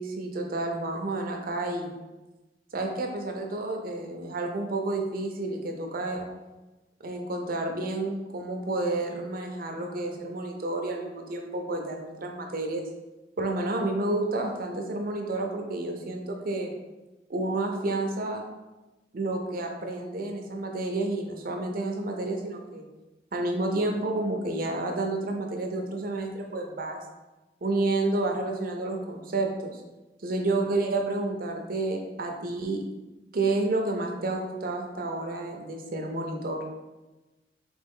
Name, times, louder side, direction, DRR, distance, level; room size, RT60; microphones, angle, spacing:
voice 1, 0.0-1.9 2.7-6.3 7.0-12.8 13.4-16.7 17.3-18.4 19.1-22.9 23.3-27.0 27.6-29.8 30.2-32.8 33.3-36.6, right 2 dB, 55° right, 3 dB, 0.6 m, -30 dB
4.2 x 2.9 x 3.6 m, 1.1 s
head